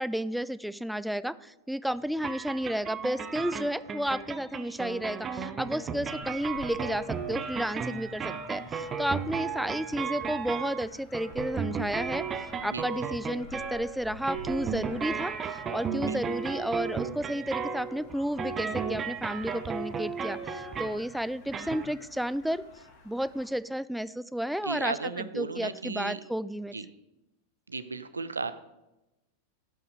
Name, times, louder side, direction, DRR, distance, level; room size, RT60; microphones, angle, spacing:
voice 1, 0.0-12.2 12.6-22.6 23.0-26.7, equal, ahead, 16 dB, 0.3 m, -32 dB
sound 1, 2.2-21.1 21.5-21.9, right 6 dB, 25° right, 0.8 m, -35 dB
sound 2, 6.2-23.5, left 4 dB, 55° left, 1.8 m, -52 dB
voice 2, 24.6-26.2 26.7-26.8 27.7-28.5, right 4 dB, 75° right, 13 dB, 0.6 m, -34 dB
13.0 x 5.7 x 4.7 m, 0.95 s
figure-of-eight pair, 90°, 0 cm